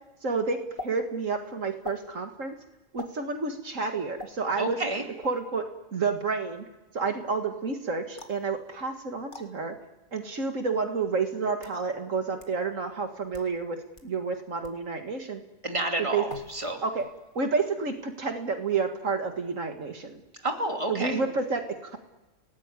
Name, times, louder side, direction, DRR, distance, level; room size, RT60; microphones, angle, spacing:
voice 1, 0.2-0.6 0.8-2.6 2.9-4.8 5.2-5.6 5.9-6.6 6.9-9.7 10.1-15.4 16.1-16.2 16.8-17.1 17.4-20.2 20.9-22.0, right 4 dB, 70° right, 5 dB, 2.2 m, -30 dB
sound 1, 0.8-0.9 1.8-2.0 3.0-3.2 4.2-4.3 5.2-5.5 8.2-8.5 9.3-9.5 10.4-10.5 11.3-11.8 12.4-12.5 13.2-13.5 14.0-14.1 14.6-14.8 16.3-16.7 17.0-17.4, left 3 dB, 40° left, 2.3 m, -42 dB
voice 2, 4.6-5.0 15.6-16.8 20.4-21.2, right 2 dB, 25° right, 3 dB, 3.0 m, -30 dB
29.0 x 19.0 x 9.7 m, 1.1 s
omnidirectional pair, 1.4 m